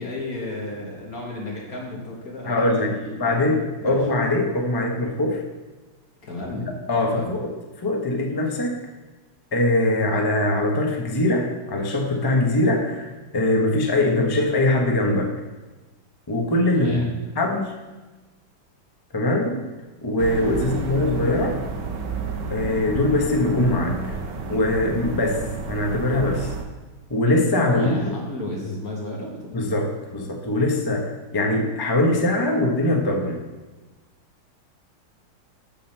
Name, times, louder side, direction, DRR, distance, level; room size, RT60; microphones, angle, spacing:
voice 1, 0.0-3.5 3.8-4.0 6.2-6.7 7.1-7.3 16.7-17.1 20.6-20.9 27.7-29.6, left 2 dB, 45° left, -3 dB, 1.9 m, -34 dB
voice 2, 2.5-5.4 6.9-7.5 7.8-8.8 9.5-15.3 16.3-17.8 19.1-19.6 20.0-21.6 22.5-24.1 24.5-26.5 27.1-28.1 29.5-33.4, left 1 dB, 30° left, 1 dB, 0.4 m, -22 dB
sound 1, 20.2-26.6, right 4 dB, 55° right, 1.2 m, -31 dB
6.6 x 5.7 x 6.6 m, 1.2 s
omnidirectional pair, 2.3 m